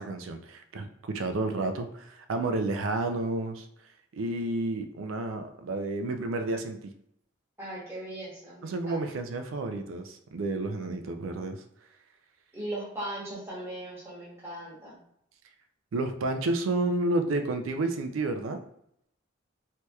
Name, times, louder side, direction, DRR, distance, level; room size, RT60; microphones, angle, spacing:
voice 1, 0.0-3.7 4.1-6.9 8.6-11.6 15.9-18.6, right 2 dB, 80° right, 7 dB, 0.4 m, -31 dB
voice 2, 7.6-9.1 12.5-15.0, right 1 dB, 10° right, -7 dB, 1.0 m, -38 dB
3.2 x 2.8 x 2.3 m, 0.74 s
head